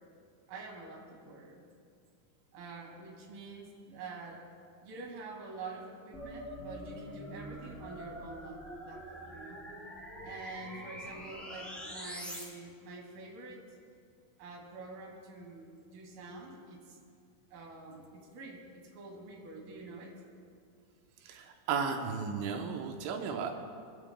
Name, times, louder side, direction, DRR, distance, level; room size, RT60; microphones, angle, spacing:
voice 1, 0.5-1.7 2.5-4.5 4.8-9.6 10.2-13.6 14.4-17.0 17.5-20.1, right 3 dB, 55° right, -1 dB, 3.5 m, -47 dB
sound 1, 6.1-12.4, equal, ahead, 2.4 m, -45 dB
voice 2, 21.2-23.5, right 5 dB, 85° right, 3 dB, 3.3 m, -34 dB
26.0 x 12.0 x 2.2 m, 2.3 s
omnidirectional pair, 5.4 m